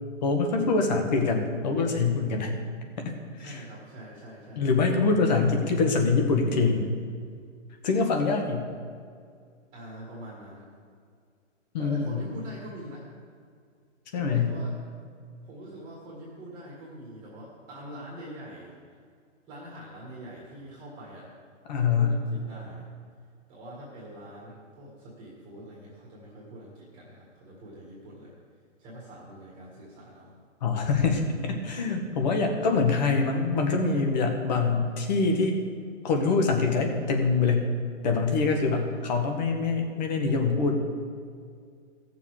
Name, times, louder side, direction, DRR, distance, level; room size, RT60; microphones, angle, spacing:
voice 1, 0.2-2.6 3.4-3.6 4.6-6.9 7.8-8.6 11.7-12.2 14.1-14.5 21.7-22.1 30.6-35.6 36.0-37.7 38.0-40.7, left 4 dB, 35° left, 3 dB, 1.4 m, -24 dB
voice 2, 3.2-4.7 9.7-10.7 11.8-13.1 14.1-14.7 15.5-18.7 19.5-21.3 21.8-22.9 23.5-28.3 28.8-30.3 38.7-38.9, equal, 10° right, -5 dB, 1.7 m, -44 dB
16.0 x 6.9 x 4.8 m, 2.2 s
hypercardioid pair, 160°, 37 cm